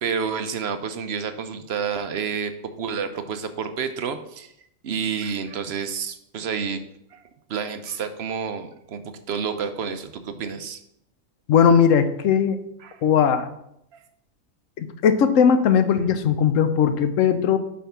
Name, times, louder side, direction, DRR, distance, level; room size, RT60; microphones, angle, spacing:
voice 1, 0.0-2.5 2.8-4.5 4.8-6.8 7.1-7.2 7.5-10.8 12.8-13.0, right 6 dB, 60° right, 9 dB, 0.8 m, -29 dB
voice 2, 11.5-12.6 13.0-13.5 14.8-17.6, left 7 dB, 75° left, 10 dB, 1.0 m, -18 dB
8.4 x 3.4 x 5.7 m, 0.77 s
omnidirectional pair, 1.4 m